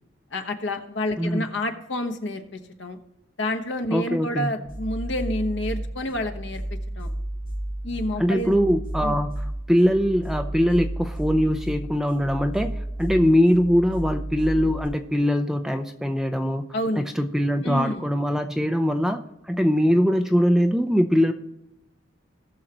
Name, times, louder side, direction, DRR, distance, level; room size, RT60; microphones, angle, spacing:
voice 1, 0.3-3.0 3.4-6.6 7.0-7.1 7.8-8.5 9.0-9.2 16.7-17.0 17.6-18.1, left 1 dB, 65° left, 6 dB, 1.2 m, -29 dB
voice 2, 1.2-1.5 3.9-4.5 8.2-16.7 17.0-21.3, equal, 5° right, 6 dB, 0.5 m, -22 dB
sound 1, 4.6-14.9, right 1 dB, 25° left, 3.1 m, -32 dB
19.0 x 6.5 x 2.9 m, 0.91 s
head